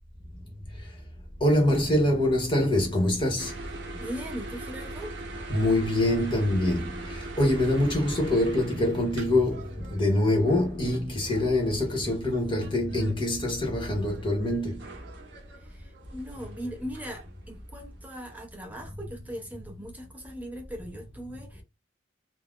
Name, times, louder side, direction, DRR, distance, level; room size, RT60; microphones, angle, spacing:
voice 1, 1.4-3.5 5.5-6.9 7.4-9.6 9.9-14.8, left 1 dB, 25° left, 0.8 m, -24 dB
sound 1, 3.4-18.4, right 2 dB, 65° right, 0.7 m, -42 dB
voice 2, 3.9-5.2 15.6-21.6, equal, 10° right, 0.5 m, -39 dB
2.4 x 2.0 x 3.5 m
head